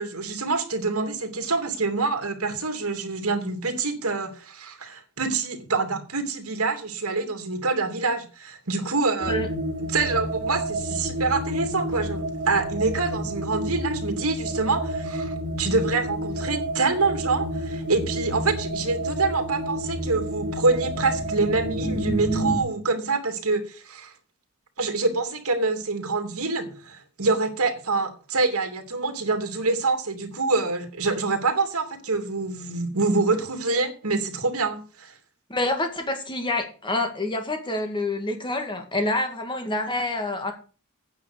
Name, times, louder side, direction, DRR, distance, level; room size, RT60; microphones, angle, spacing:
voice 1, 0.0-9.3 9.9-24.1 24.8-35.1, right 3 dB, 75° right, 4 dB, 2.7 m, -26 dB
sound 1, 9.2-22.6, right 1 dB, 40° right, 3.2 m, -29 dB
voice 2, 35.5-40.5, left 2 dB, 20° left, 5 dB, 2.1 m, -27 dB
9.3 x 5.8 x 8.1 m, 0.36 s
head